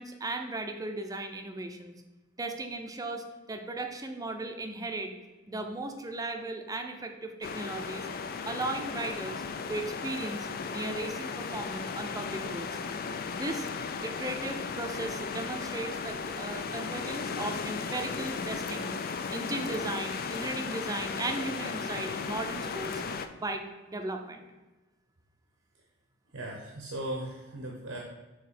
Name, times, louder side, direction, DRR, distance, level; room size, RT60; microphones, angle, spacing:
voice 1, 0.0-1.9 2.4-5.1 5.5-8.1 8.5-9.4 9.7-12.8 13.3-13.7 14.0-19.0 19.3-23.0 23.3-24.5, right 2 dB, 20° right, 5 dB, 0.6 m, -36 dB
sound 1, 7.4-23.3, left 5 dB, 50° left, 0.4 m, -36 dB
voice 2, 26.3-28.0, right 1 dB, 80° right, -1 dB, 0.9 m, -37 dB
6.3 x 3.8 x 4.2 m, 1.2 s
head